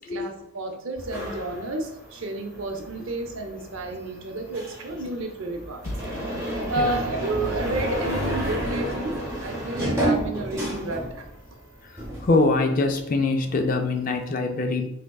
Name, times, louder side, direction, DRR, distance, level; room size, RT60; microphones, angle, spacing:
voice 1, 0.1-5.9 6.6-9.1 9.4-11.2, right 2 dB, 75° right, 3 dB, 0.6 m, -31 dB
sound 1, 1.0-11.6 11.9-13.1, right 1 dB, 15° right, 0.8 m, -31 dB
voice 2, 12.2-14.9, left 3 dB, 40° left, 5 dB, 0.4 m, -23 dB
3.6 x 3.3 x 2.3 m, 0.81 s
head